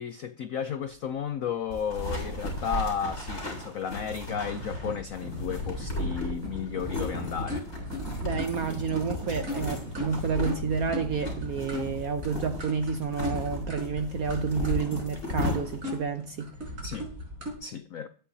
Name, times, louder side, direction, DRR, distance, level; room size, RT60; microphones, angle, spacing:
voice 1, 0.0-7.7 16.8-17.1 17.6-18.1, left 8 dB, 75° left, 0.7 m, -33 dB
sound 1, 1.7-16.0, left 1 dB, 45° left, 5.6 m, -35 dB
sound 2, 3.9-17.5, equal, 40° right, 4.9 m, -38 dB
voice 2, 8.2-16.5, right 6 dB, 65° right, 0.9 m, -30 dB
21.0 x 9.1 x 2.8 m
omnidirectional pair, 2.2 m